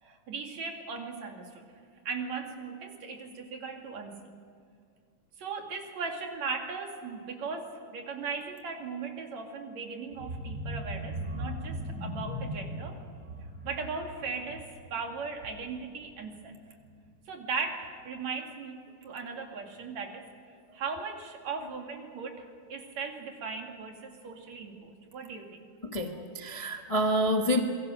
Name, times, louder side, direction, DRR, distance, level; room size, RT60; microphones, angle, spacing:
voice 1, 0.0-1.7 2.1-4.3 5.4-13.0 13.6-16.6 17.3-25.6, right 4 dB, 65° right, 2 dB, 3.6 m, -38 dB
sound 1, 10.1-15.9 16.3-16.5 16.8-16.9, equal, 30° right, 4.8 m, -39 dB
voice 2, 25.8-27.6, equal, 70° left, 2 dB, 0.3 m, -28 dB
27.0 x 23.0 x 6.6 m, 2.2 s
omnidirectional pair, 3.4 m